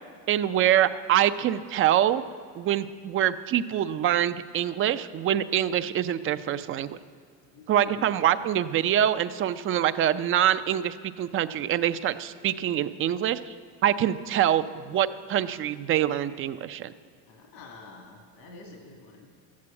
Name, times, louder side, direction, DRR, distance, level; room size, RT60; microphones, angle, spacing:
voice 1, 0.3-2.2 2.6-7.0 7.7-13.5 13.8-16.9, right 11 dB, 35° right, 12 dB, 0.4 m, -25 dB
voice 2, 7.5-8.2 17.3-19.3, left 3 dB, 75° left, 1 dB, 2.0 m, -47 dB
12.5 x 8.5 x 8.6 m, 2.2 s
cardioid pair, 135°, 38 cm